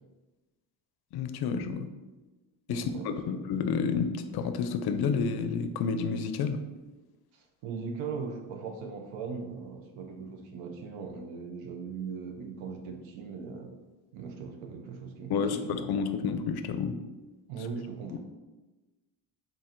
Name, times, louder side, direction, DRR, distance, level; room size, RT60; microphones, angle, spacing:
voice 1, 1.1-1.9 2.7-6.6 15.3-17.0 18.1-18.2, left 5 dB, 55° left, 9 dB, 0.5 m, -30 dB
voice 2, 2.7-3.4 7.3-13.7 14.1-15.9 17.5-18.2, right 5 dB, 80° right, 4 dB, 0.7 m, -39 dB
3.8 x 2.5 x 4.3 m, 1.1 s
cardioid pair, 95°, 45 cm